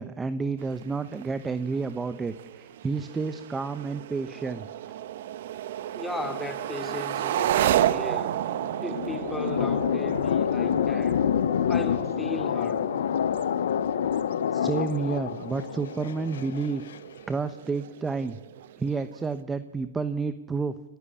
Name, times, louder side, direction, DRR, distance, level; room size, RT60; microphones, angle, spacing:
voice 1, 0.0-4.7 14.5-16.9 17.3-18.4 18.8-20.8, right 4 dB, 10° right, 0.9 m, -30 dB
sound 1, 0.6-19.4, right 12 dB, 65° right, 1.1 m, -33 dB
voice 2, 5.9-8.4 8.8-11.2 11.7-12.9, left 2 dB, 5° left, 3.1 m, -36 dB
sound 2, 8.4-17.0, left 9 dB, 75° left, 0.8 m, -27 dB
27.0 x 15.5 x 8.5 m
hypercardioid pair, 125°, 0 cm